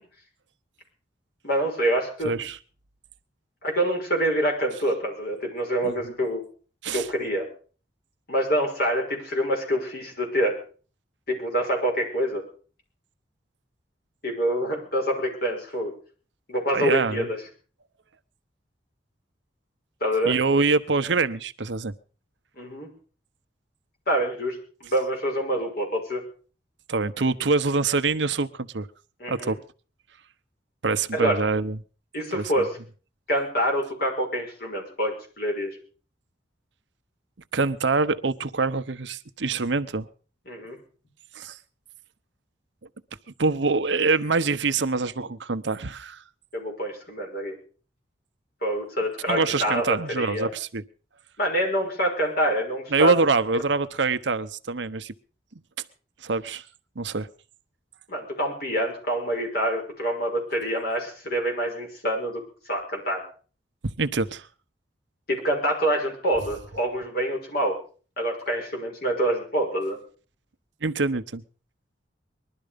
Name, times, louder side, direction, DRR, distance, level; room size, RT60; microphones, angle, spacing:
voice 1, 1.4-2.3 3.6-6.4 6.9-7.5 8.3-10.6 11.3-12.4 14.2-15.9 16.5-17.4 20.0-20.3 22.6-22.9 24.1-26.2 29.2-29.5 31.1-31.4 32.1-32.8 33.3-35.7 40.5-40.8 46.5-47.5 48.6-50.5 51.4-53.1 58.1-63.2 65.3-67.8 68.2-70.0, equal, 55° left, 6.0 m, -26 dB
voice 2, 2.2-2.6 5.8-6.1 6.8-7.1 16.7-17.3 20.2-21.9 26.9-28.9 29.3-29.6 30.8-31.8 32.3-32.6 37.5-40.1 41.3-41.6 43.4-46.2 49.3-50.8 52.9-55.1 56.2-56.6 57.0-57.3 63.8-64.5 70.8-71.4, right 4 dB, 85° right, 0.9 m, -25 dB
21.0 x 12.0 x 5.2 m
head